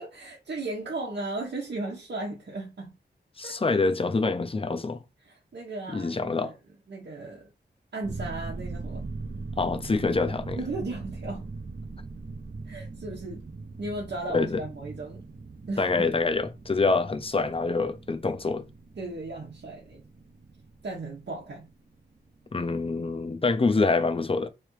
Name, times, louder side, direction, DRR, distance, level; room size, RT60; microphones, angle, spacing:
voice 1, 0.0-2.9 3.4-3.6 5.2-6.5 6.9-7.5 7.9-9.1 10.6-11.4 12.7-13.4 13.8-15.3 15.7-16.0 19.0-20.0 20.8-21.7, right 2 dB, 75° right, 1.0 m, -36 dB
voice 2, 3.4-5.0 5.9-6.5 9.6-10.6 14.3-14.6 15.8-18.6 22.5-24.5, left 3 dB, 30° left, 0.6 m, -26 dB
sound 1, 8.0-22.5 22.8-22.9, right 3 dB, 50° right, 0.7 m, -41 dB
3.5 x 3.3 x 3.1 m
wide cardioid pair, 80°, 18 cm